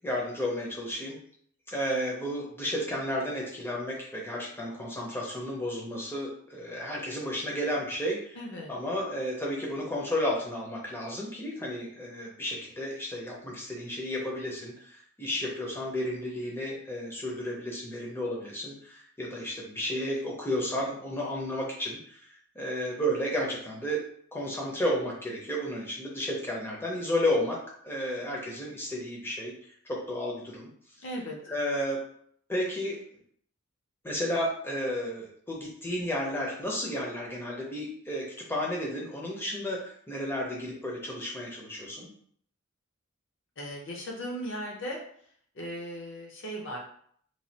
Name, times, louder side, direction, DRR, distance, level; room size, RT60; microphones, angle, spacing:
voice 1, 0.0-1.2 1.7-8.4 8.7-22.3 22.6-24.0 24.3-27.6 27.8-29.5 29.9-30.7 31.5-32.0 32.5-33.0 34.0-42.1, equal, 10° left, -2 dB, 0.6 m, -32 dB
voice 2, 8.4-8.7 31.0-31.3 43.6-45.0 45.5-46.8, equal, 55° left, -1 dB, 0.6 m, -37 dB
3.1 x 2.3 x 2.7 m, 0.63 s
head